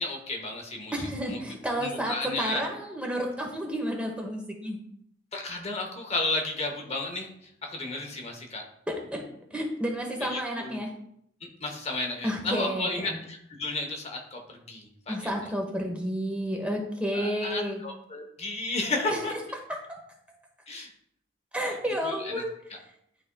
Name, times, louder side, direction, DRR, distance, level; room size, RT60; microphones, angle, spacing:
voice 1, 0.0-0.9 1.3-1.4 1.8-2.6 5.3-7.3 7.6-8.6 10.2-10.8 11.6-15.3 17.1-19.3 20.7-20.9 22.0-22.4, left 2 dB, 35° left, 2 dB, 0.9 m, -33 dB
voice 2, 0.9-4.8 8.9-9.2 9.5-10.9 12.2-13.2 15.1-17.8 19.1-19.4 19.7-20.0 21.5-22.5, equal, 5° right, 1 dB, 0.9 m, -31 dB
11.0 x 4.1 x 2.2 m, 0.72 s
head